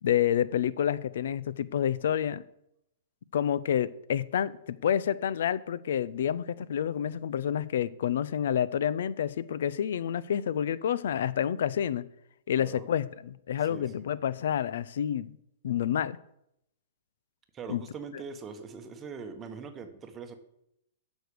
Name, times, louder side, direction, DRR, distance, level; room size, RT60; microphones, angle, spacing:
voice 1, 0.0-2.4 3.3-12.0 12.5-15.4 15.6-16.2 17.7-17.8, left 9 dB, 70° left, 18 dB, 0.5 m, -29 dB
voice 2, 12.6-13.0 13.6-14.1 17.5-20.3, right 5 dB, 20° right, 7 dB, 1.0 m, -42 dB
8.0 x 6.3 x 6.9 m, 0.78 s
hypercardioid pair, 150°, 0 cm